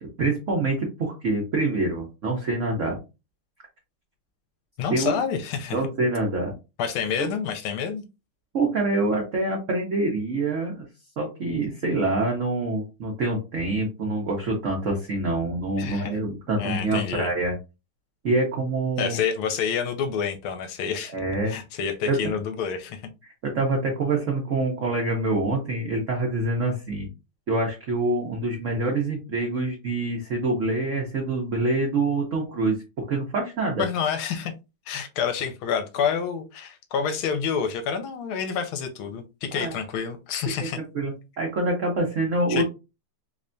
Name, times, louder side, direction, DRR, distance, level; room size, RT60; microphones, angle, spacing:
voice 1, 0.0-3.0 4.9-5.2 5.7-6.5 7.2-7.3 8.5-10.8 11.2-17.5 18.2-19.2 21.1-21.5 22.1-22.3 23.4-27.1 27.5-33.8 39.5-39.7 40.6-42.6, right 2 dB, 60° right, 0.8 m, -26 dB
voice 2, 4.8-5.8 6.8-8.0 15.8-16.1 16.6-17.3 19.0-21.2 21.5-23.1 33.8-34.5 34.9-40.8 42.5-42.6, left 7 dB, 75° left, 1.4 m, -28 dB
3.5 x 3.2 x 2.6 m
omnidirectional pair, 2.4 m